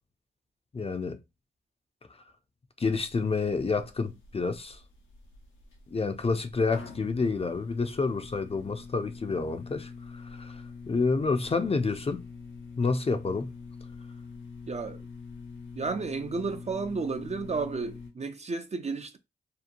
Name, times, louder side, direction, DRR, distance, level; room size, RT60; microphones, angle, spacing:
voice 1, 0.7-1.2 2.8-4.8 5.9-12.2 12.8-13.5, left 4 dB, 30° left, 0.5 m, -29 dB
sound 1, 2.9-18.1, left 5 dB, 85° left, 0.7 m, -45 dB
voice 2, 14.7-15.0 15.7-19.2, right 4 dB, 35° right, 0.4 m, -32 dB
2.9 x 2.2 x 2.5 m
cardioid pair, 45°, 19 cm